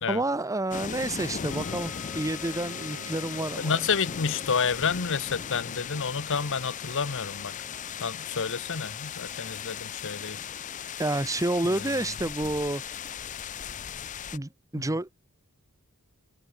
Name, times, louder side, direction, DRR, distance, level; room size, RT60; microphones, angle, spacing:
voice 1, 0.1-3.7 11.0-12.8 14.3-15.1, right 2 dB, 15° right, 0.9 m, -29 dB
sound 1, 0.7-14.4, left 8 dB, 35° left, 0.5 m, -37 dB
sound 2, 1.5-14.5, equal, ahead, 4.7 m, -54 dB
sound 3, 2.5-10.3, right 3 dB, 80° right, 1.2 m, -53 dB
voice 2, 3.6-7.6 8.0-10.4 11.7-11.9, left 5 dB, 60° left, 0.9 m, -29 dB
head